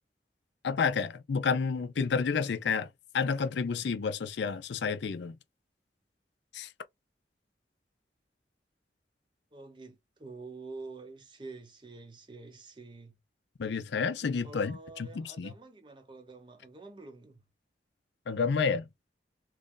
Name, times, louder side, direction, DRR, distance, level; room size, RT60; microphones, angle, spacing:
voice 1, 0.6-2.9 3.1-5.4 6.5-6.7 13.6-15.5 18.3-18.8, left 5 dB, 75° left, 0.4 m, -30 dB
voice 2, 9.5-13.2 14.4-17.4, right 3 dB, 25° right, 0.7 m, -47 dB
3.0 x 2.5 x 3.7 m
head